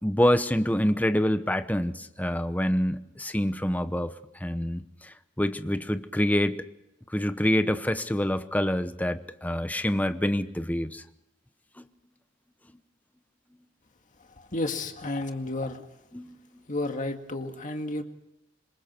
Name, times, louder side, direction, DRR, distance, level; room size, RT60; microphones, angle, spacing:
voice 1, 0.0-4.1 4.4-6.6 7.1-11.0 16.1-16.4, equal, 10° left, 10 dB, 1.0 m, -26 dB
voice 2, 14.4-15.9 16.7-18.0, left 2 dB, 40° left, 5 dB, 2.1 m, -32 dB
27.0 x 22.0 x 4.5 m, 0.87 s
head